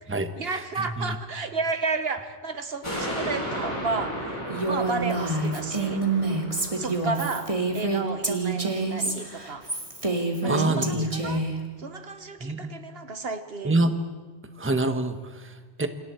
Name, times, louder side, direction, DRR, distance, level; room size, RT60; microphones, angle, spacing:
voice 1, 0.0-6.2 6.8-9.7 10.4-11.5 11.8-13.7, right 4 dB, 60° right, 9 dB, 1.4 m, -32 dB
voice 2, 0.8-1.2 10.5-11.4 12.4-12.7 13.6-13.9 14.6-15.9, right 2 dB, 10° right, 8 dB, 1.2 m, -26 dB
sound 1, 2.8-9.5 9.9-10.0, equal, 25° left, 6.7 m, -35 dB
Female speech woman speaking, 4.5-11.5, right 2 dB, 30° right, 2.5 m, -27 dB
29.0 x 26.5 x 4.5 m, 1.3 s
omnidirectional pair, 1.2 m